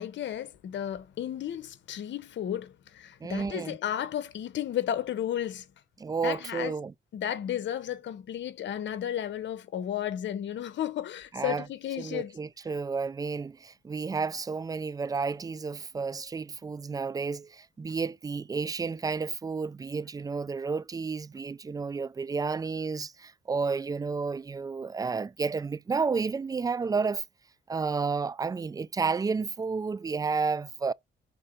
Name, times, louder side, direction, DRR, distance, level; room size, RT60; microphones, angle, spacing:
voice 1, 0.0-5.7 6.2-6.7 7.1-12.4, left 10 dB, 65° left, 1.0 m, -33 dB
voice 2, 3.2-3.8 6.0-6.9 11.3-11.6 12.0-27.2 27.7-30.9, right 4 dB, 20° right, 0.3 m, -31 dB
5.4 x 3.9 x 5.2 m
cardioid pair, 90°, 20 cm